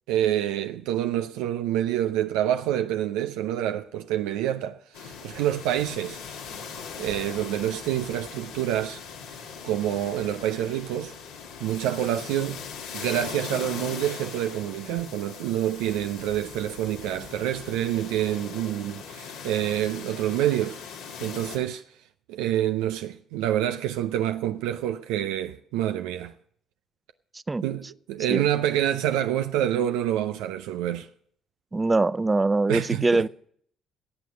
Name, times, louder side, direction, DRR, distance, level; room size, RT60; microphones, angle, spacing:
voice 1, 0.1-6.2 7.0-9.0 9.6-11.1 11.6-12.6 12.9-20.8 21.2-21.8 22.3-26.3 27.6-31.1 32.7-33.2, right 12 dB, 80° right, 0.5 m, -27 dB
sound 1, 4.9-21.6, left 6 dB, 85° left, 2.4 m, -40 dB
voice 2, 31.7-33.3, right 3 dB, 25° right, 0.5 m, -23 dB
15.5 x 8.4 x 6.4 m
hypercardioid pair, 55°, 0 cm